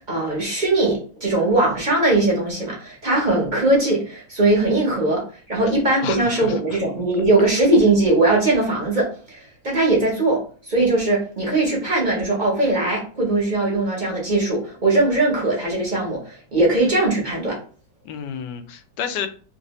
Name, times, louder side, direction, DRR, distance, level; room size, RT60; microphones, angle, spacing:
voice 1, 0.0-17.6, right 2 dB, 40° right, -2 dB, 0.7 m, -20 dB
voice 2, 6.0-6.8 18.0-19.3, left 7 dB, 80° left, 8 dB, 1.2 m, -30 dB
3.3 x 2.6 x 2.9 m, 0.40 s
omnidirectional pair, 1.9 m